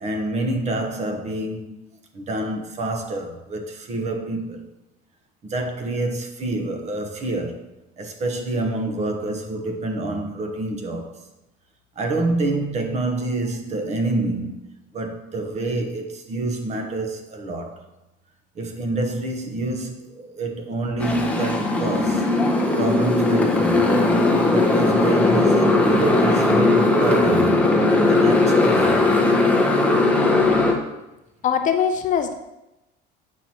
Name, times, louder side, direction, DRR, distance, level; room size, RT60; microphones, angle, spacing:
voice 1, 0.0-1.9 2.1-4.7 5.4-11.3 12.0-17.8 18.5-22.3 22.7-23.9 24.4-29.2, right 2 dB, 35° right, 0.9 m, -27 dB
Motorcycle, 21.0-30.7, left 2 dB, 5° left, 0.8 m, -18 dB
voice 2, 31.4-32.3, left 7 dB, 40° left, 0.5 m, -21 dB
7.5 x 5.8 x 2.9 m
cardioid pair, 145°, 20 cm